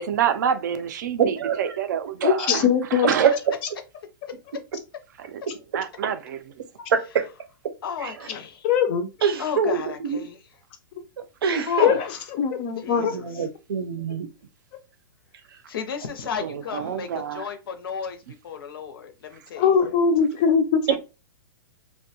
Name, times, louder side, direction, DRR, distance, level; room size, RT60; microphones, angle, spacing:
voice 1, 0.0-3.3 5.2-5.4 5.7-6.4 16.4-17.5, right 8 dB, 50° right, 0.4 m, -27 dB
voice 2, 1.2-1.7 3.2-3.3 6.9-7.3 8.0-8.1 9.2-10.2 11.4-11.9 13.0-14.3 20.9-21.0, right 7 dB, 90° right, 0.6 m, -24 dB
voice 3, 2.2-3.1 8.6-9.1 9.6-9.7 11.8-12.0 12.4-13.1 19.6-20.8, left 7 dB, 25° left, 0.4 m, -20 dB
voice 4, 7.8-8.7 9.4-10.4 11.6-12.2 12.8-13.5 15.7-19.8 20.9-21.0, left 7 dB, 75° left, 0.6 m, -33 dB
2.5 x 2.2 x 2.7 m
hypercardioid pair, 170°, 12 cm